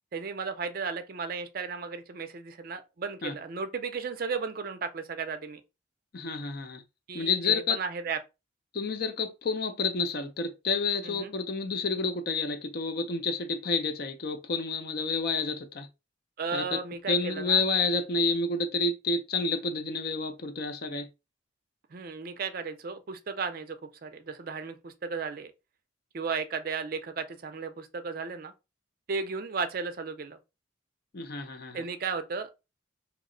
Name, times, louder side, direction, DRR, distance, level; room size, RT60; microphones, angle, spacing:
voice 1, 0.1-5.6 7.1-8.2 11.0-11.3 16.4-17.6 21.9-25.5 26.1-28.5 29.1-30.4 31.7-32.5, right 5 dB, 45° right, 0.4 m, -35 dB
voice 2, 6.1-6.8 7.1-7.8 8.7-15.9 16.5-16.8 17.1-21.1 31.1-31.8, left 4 dB, 50° left, 0.5 m, -29 dB
2.9 x 2.0 x 3.7 m
head